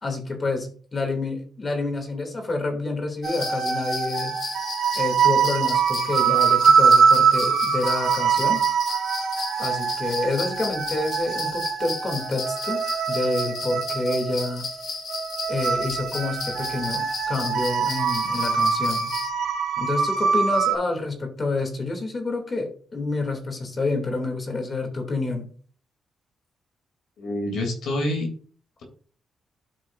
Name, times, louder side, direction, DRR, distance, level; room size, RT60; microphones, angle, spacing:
voice 1, 0.0-4.4 4.9-8.6 9.6-14.6 15.5-19.1 19.8-25.5, left 3 dB, 35° left, 4 dB, 2.9 m, -28 dB
sound 1, 3.2-19.3, left 4 dB, 60° left, 3.0 m, -34 dB
sound 2, 3.2-20.8, right 6 dB, 75° right, 1.9 m, -23 dB
voice 2, 27.2-28.3, left 1 dB, 80° left, 1 dB, 3.1 m, -27 dB
12.5 x 4.9 x 2.7 m, 0.44 s
cardioid pair, 85°, 0 cm